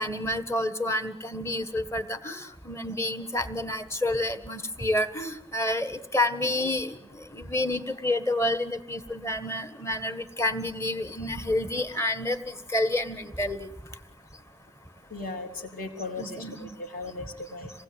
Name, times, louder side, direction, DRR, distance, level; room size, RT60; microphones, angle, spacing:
voice 1, 0.0-6.9 7.3-12.4 12.7-13.7 16.2-16.7, left 1 dB, 15° left, 10 dB, 1.6 m, -29 dB
voice 2, 15.1-17.7, left 3 dB, 55° left, 4 dB, 3.3 m, -37 dB
27.5 x 19.5 x 9.3 m, 0.88 s
head